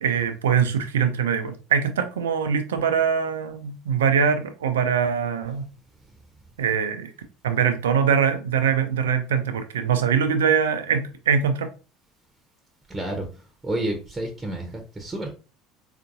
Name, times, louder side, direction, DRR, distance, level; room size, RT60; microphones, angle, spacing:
voice 1, 0.0-5.7 6.6-7.1 7.4-11.7, right 7 dB, 70° right, 8 dB, 0.5 m, -23 dB
voice 2, 12.9-13.3 13.6-15.3, right 1 dB, 15° right, 3 dB, 0.8 m, -30 dB
4.4 x 2.5 x 2.6 m, 0.34 s
figure-of-eight pair, 65°, 0 cm